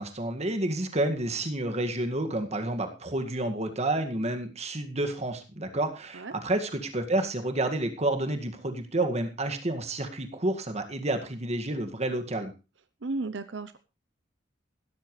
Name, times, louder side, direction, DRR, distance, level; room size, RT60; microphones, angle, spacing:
voice 1, 0.0-12.5, right 1 dB, 35° right, 6 dB, 2.0 m, -30 dB
voice 2, 13.0-13.8, right 3 dB, 80° right, 12 dB, 0.8 m, -34 dB
16.0 x 13.0 x 3.3 m, 0.30 s
head